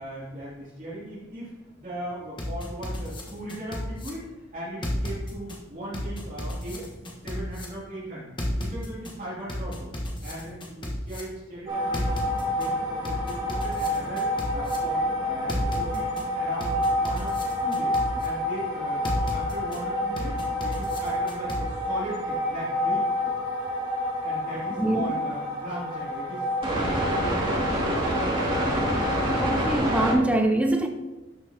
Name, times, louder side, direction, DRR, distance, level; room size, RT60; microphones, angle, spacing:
voice 1, 0.0-1.5 1.8-6.9 7.2-9.9 10.2-12.1 12.4-16.1 16.3-23.4 24.2-28.0, right 1 dB, 40° right, -8 dB, 2.8 m, -38 dB
sound 1, 2.4-4.1 4.8-5.6 5.9-7.6 8.4-9.1 9.5-11.2 11.9-12.7 13.0-14.8 15.5-16.2 16.6-18.3 19.0-19.8 20.2-21.6, left 1 dB, 25° left, 1.3 m, -33 dB
sound 2, 11.7-30.1, left 1 dB, 25° right, 2.4 m, -28 dB
voice 2, 29.4-30.9, right 1 dB, 5° right, 3 dB, 0.5 m, -23 dB
12.0 x 5.8 x 2.9 m, 1.1 s
head